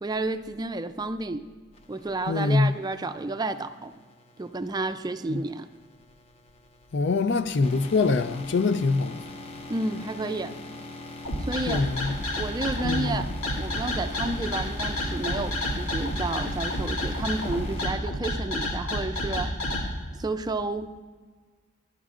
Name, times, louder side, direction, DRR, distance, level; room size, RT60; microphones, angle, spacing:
voice 1, 0.0-1.5 1.9-4.0 4.4-5.7 9.7-10.6 11.4-11.9 12.4-13.3 13.6-19.5 20.1-20.9, right 2 dB, 20° right, 0.4 m, -31 dB
sound 1, 1.7-17.9, left 2 dB, 30° left, 0.8 m, -43 dB
voice 2, 2.3-2.7 5.3-5.4 6.9-9.2 11.7-12.1 12.8-13.2, left 3 dB, 60° left, 0.5 m, -24 dB
sound 2, 11.2-19.8, left 1 dB, 90° left, 2.5 m, -29 dB
28.5 x 11.0 x 2.5 m
head